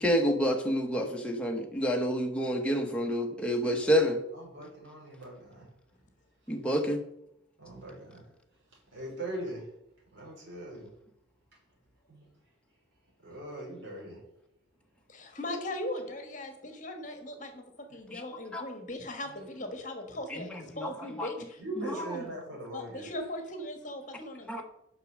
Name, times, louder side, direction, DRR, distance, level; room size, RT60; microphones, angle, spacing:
voice 1, 0.0-4.2 6.5-7.0 18.1-18.2 18.5-18.6 20.3-20.4 20.7-20.9 21.2-21.3 21.8-22.1 24.5-24.6, equal, 5° left, 1 dB, 1.0 m, -28 dB
voice 2, 4.3-5.7 7.6-8.2 8.7-9.7 10.1-10.9 12.1-12.2 13.2-14.2 21.6-23.1, right 1 dB, 75° right, -4 dB, 3.6 m, -40 dB
voice 3, 15.1-20.5 20.8-21.6 21.9-22.2 22.5-24.6, left 1 dB, 40° left, 5 dB, 1.4 m, -39 dB
6.6 x 5.9 x 6.4 m, 0.79 s
head